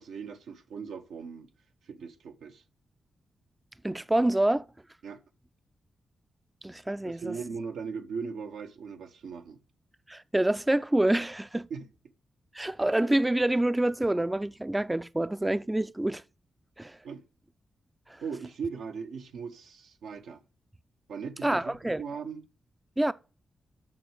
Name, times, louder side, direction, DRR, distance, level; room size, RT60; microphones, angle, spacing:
voice 1, 0.0-1.5 1.8-2.6 5.0-5.2 7.0-9.6 11.7-11.9 17.0-17.2 18.2-20.4 21.1-22.4, right 5 dB, 85° right, 1.1 m, -39 dB
voice 2, 3.8-4.6 6.6-7.4 10.1-11.7 12.5-16.2 16.8-17.0 18.1-18.2 21.4-22.0 23.0-23.1, right 1 dB, 15° right, 0.5 m, -27 dB
7.6 x 6.4 x 8.0 m
supercardioid pair, 45°, 0 cm